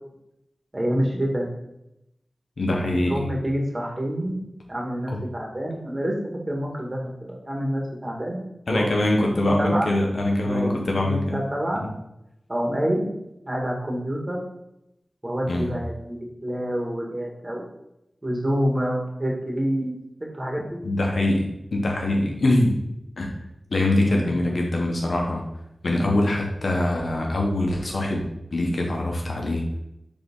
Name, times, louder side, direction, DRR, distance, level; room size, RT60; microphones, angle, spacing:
voice 1, 0.7-1.5 2.7-2.8 3.1-4.4 4.7-6.1 6.5-9.9 10.4-10.8 11.0-11.8 12.5-13.1 13.5-14.4 15.2-17.6 18.2-20.0 20.3-20.8 24.1-24.7 25.8-26.2, equal, 35° right, -1 dB, 1.9 m, -27 dB
voice 2, 2.6-3.3 5.1-5.2 8.7-11.4 11.8-11.9 15.5-15.7 20.8-22.8 23.2-23.3 23.7-25.4 25.8-28.2 28.5-29.7, left 1 dB, 80° left, 0 dB, 1.2 m, -23 dB
7.0 x 3.7 x 3.7 m, 0.84 s
cardioid pair, 40°, 0 cm